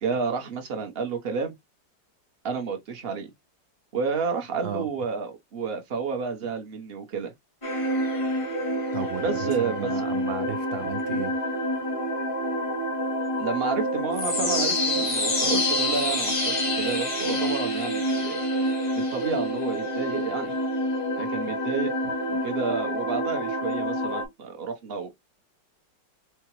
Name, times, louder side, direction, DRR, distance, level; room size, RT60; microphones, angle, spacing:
voice 1, 0.0-1.5 2.4-3.3 3.9-7.3 9.2-9.9 13.4-18.4 19.0-20.5 21.2-21.9 22.3-25.1, right 5 dB, 50° right, 0.8 m, -30 dB
sound 1, 7.6-24.2, equal, 60° left, 0.3 m, -27 dB
voice 2, 8.9-11.3, right 8 dB, 85° right, 0.5 m, -34 dB
4.7 x 2.1 x 2.9 m
omnidirectional pair, 1.9 m